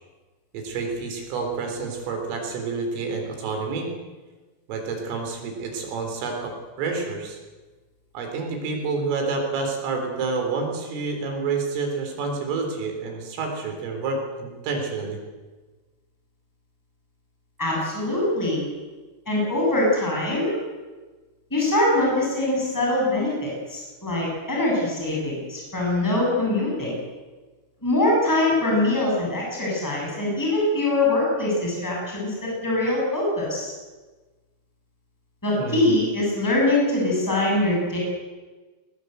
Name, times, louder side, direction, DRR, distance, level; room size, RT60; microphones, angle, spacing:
voice 1, 0.5-3.9 4.7-6.5 6.8-7.4 8.1-15.2 35.5-35.9, right 4 dB, 75° right, 3 dB, 6.3 m, -28 dB
voice 2, 17.6-18.6 19.3-20.5 21.5-27.0 27.8-33.7 35.4-38.0, left 2 dB, 5° left, -3 dB, 7.4 m, -23 dB
20.5 x 19.5 x 8.1 m, 1.3 s
omnidirectional pair, 5.9 m